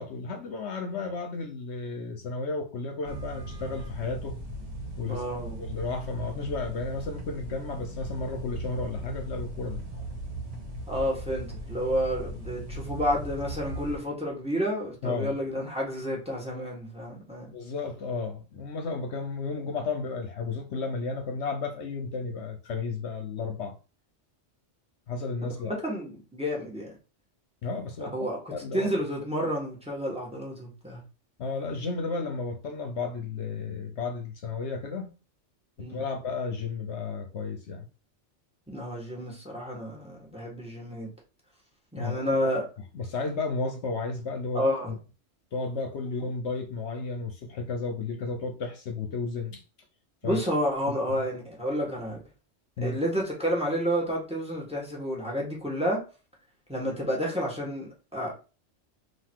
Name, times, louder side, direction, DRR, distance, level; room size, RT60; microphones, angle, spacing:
voice 1, 0.0-4.4 5.0-5.2 5.6-9.8 15.0-15.4 17.5-23.7 25.1-25.7 27.6-28.2 28.5-28.9 31.4-35.1 35.8-37.8 42.0-42.4 42.9-44.6 45.5-49.6 50.2-50.4 50.9-51.0 52.8-53.0, left 4 dB, 65° left, 1.0 m, -33 dB
sound 1, 3.0-14.0, right 1 dB, 35° right, 1.4 m, -38 dB
voice 2, 5.1-5.7 10.9-17.5 25.4-26.9 28.1-28.4 28.7-31.0 35.8-36.0 38.7-41.1 41.9-42.7 44.5-45.0 50.2-52.2 52.8-56.0 56.7-58.3, equal, 5° right, 1.3 m, -30 dB
3.8 x 2.6 x 4.5 m
omnidirectional pair, 1.3 m